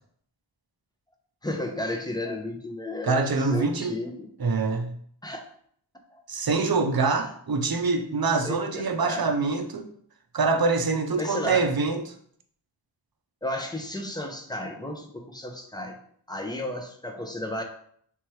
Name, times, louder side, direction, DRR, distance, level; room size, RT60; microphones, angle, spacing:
voice 1, 1.4-4.3 5.2-5.4 6.1-6.2 7.1-7.2 8.4-9.2 11.2-11.6 13.4-16.0 16.3-17.6, left 1 dB, 10° left, 2 dB, 0.7 m, -33 dB
voice 2, 3.0-3.9 4.4-4.9 6.3-9.9 10.3-12.1, right 4 dB, 50° right, 6 dB, 0.7 m, -25 dB
3.5 x 3.0 x 4.6 m, 0.62 s
wide cardioid pair, 65°, 46 cm